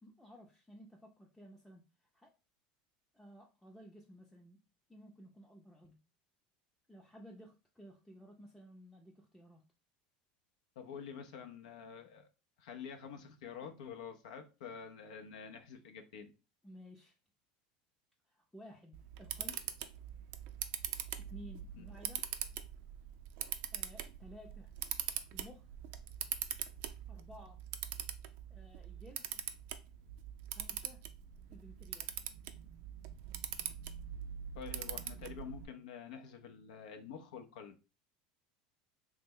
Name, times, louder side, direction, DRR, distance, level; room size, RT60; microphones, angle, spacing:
voice 1, 0.0-2.3 3.1-4.6 4.9-6.0 6.9-9.6 16.6-17.2 18.3-19.6 21.2-22.2 23.7-24.7 25.3-25.7 27.1-27.6 28.5-29.4 30.5-31.0 31.5-32.2, equal, 5° left, -2 dB, 0.5 m, -55 dB
voice 2, 10.8-12.3 12.6-16.3 21.7-21.8 34.5-37.8, left 7 dB, 80° left, 6 dB, 0.5 m, -48 dB
Camera, 18.9-35.6, right 10 dB, 65° right, 0.3 m, -43 dB
3.0 x 2.1 x 3.5 m, 0.32 s
supercardioid pair, 105°, 4 cm